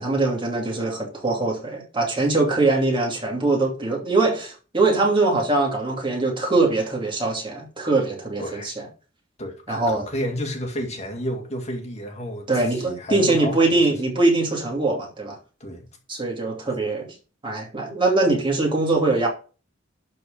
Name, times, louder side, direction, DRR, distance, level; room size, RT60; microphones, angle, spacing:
voice 1, 0.0-8.9 9.7-10.0 12.5-15.4 16.1-17.1 17.4-19.3, right 2 dB, 25° right, 2.8 m, -22 dB
voice 2, 8.4-8.7 9.4-13.7 15.6-15.9, equal, 35° left, 2.1 m, -31 dB
11.5 x 4.6 x 5.2 m
head